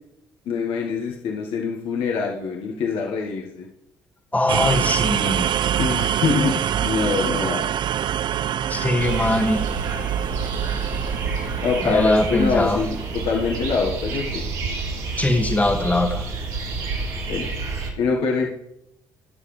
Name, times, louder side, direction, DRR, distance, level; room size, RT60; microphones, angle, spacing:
voice 1, 0.4-3.7 5.8-7.7 11.6-14.4 17.3-17.5 18.0-18.6, left 5 dB, 70° left, -1 dB, 1.5 m, -24 dB
voice 2, 4.3-5.5 8.7-9.7 11.8-12.8 15.2-16.3, left 1 dB, 15° left, 5 dB, 2.1 m, -21 dB
sound 1, 4.5-14.2, right 10 dB, 55° right, 0.4 m, -26 dB
sound 2, 9.0-17.9, right 3 dB, 80° right, 3.1 m, -29 dB
17.5 x 7.0 x 3.3 m, 0.80 s
hypercardioid pair, 60°, 10 cm